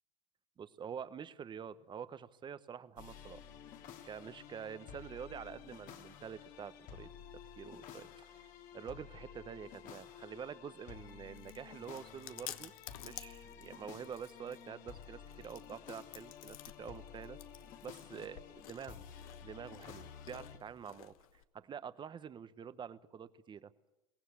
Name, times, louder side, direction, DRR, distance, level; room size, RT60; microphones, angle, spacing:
voice 1, 0.6-3.4 4.0-8.5 8.7-12.7 13.0-17.4 17.8-19.0 19.4-23.7, right 7 dB, 25° right, 14 dB, 1.0 m, -47 dB
sound 1, 3.0-20.6, left 8 dB, 50° left, 2.3 m, -52 dB
Chewing mastication, 10.8-21.4, left 13 dB, 80° left, 1.2 m, -53 dB
23.0 x 17.5 x 8.5 m, 1.0 s
supercardioid pair, 115°, 18 cm